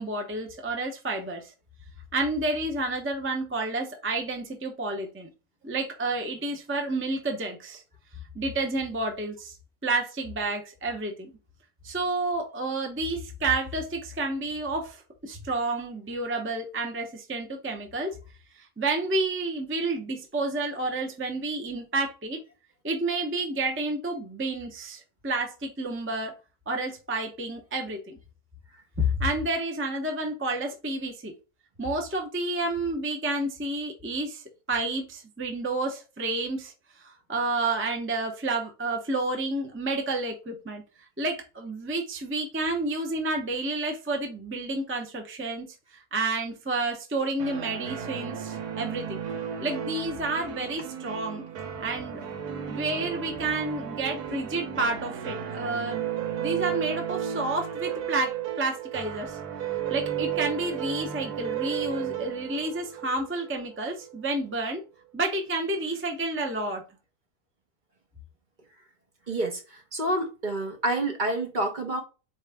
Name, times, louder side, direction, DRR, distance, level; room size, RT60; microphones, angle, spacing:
voice 1, 0.0-1.5 2.1-5.3 5.6-7.8 8.3-9.6 9.8-11.3 11.8-18.1 18.6-22.4 22.8-26.3 26.7-28.2 29.0-31.3 31.8-40.8 41.2-45.6 45.9-49.2 49.6-51.4 51.8-52.2 52.7-56.1 56.4-59.4 59.9-64.8 65.1-66.8, right 2 dB, 20° right, 0.3 m, -30 dB
sound 1, 47.4-64.1, right 9 dB, 85° right, 1.5 m, -34 dB
voice 2, 69.3-72.0, right 1 dB, 40° right, 0.9 m, -28 dB
4.2 x 3.1 x 3.4 m
omnidirectional pair, 1.6 m